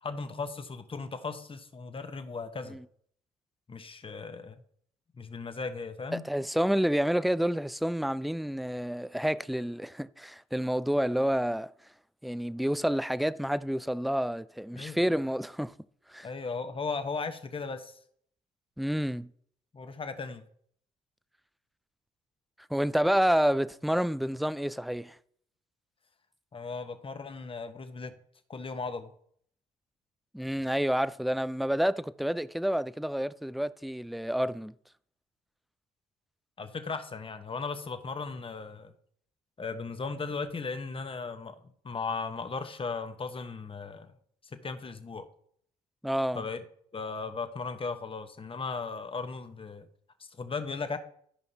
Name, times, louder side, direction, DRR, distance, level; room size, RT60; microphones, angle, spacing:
voice 1, 0.0-2.8 3.7-4.6 5.2-6.3 14.7-15.0 16.2-18.0 19.7-20.4 26.5-28.2 28.5-29.1 36.6-38.9 39.6-41.6 41.8-44.1 44.4-45.2 46.3-46.6 46.9-49.9 50.2-51.0, left 4 dB, 30° left, 1.2 m, -37 dB
voice 2, 6.1-11.7 12.2-15.7 16.1-16.3 18.8-19.3 22.7-25.2 30.3-34.7 46.0-46.4, equal, ahead, 0.4 m, -29 dB
14.5 x 5.2 x 2.9 m
hypercardioid pair, 55°, 17 cm